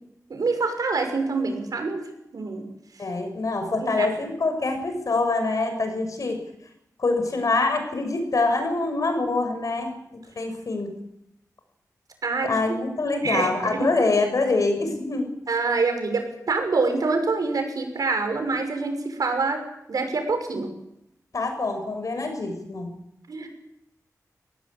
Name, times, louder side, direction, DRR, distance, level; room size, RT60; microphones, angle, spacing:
voice 1, 0.3-2.0 2.3-2.7 3.8-4.1 12.2-12.5 13.2-13.9 15.5-19.6 19.9-20.7 23.3-23.5, right 3 dB, 80° right, 5 dB, 6.0 m, -25 dB
voice 2, 3.0-6.4 7.0-9.9 10.4-10.9 12.4-15.3 21.3-22.9, left 3 dB, 65° left, 6 dB, 6.6 m, -25 dB
25.0 x 18.0 x 8.9 m, 0.81 s
wide cardioid pair, 110°, 6 cm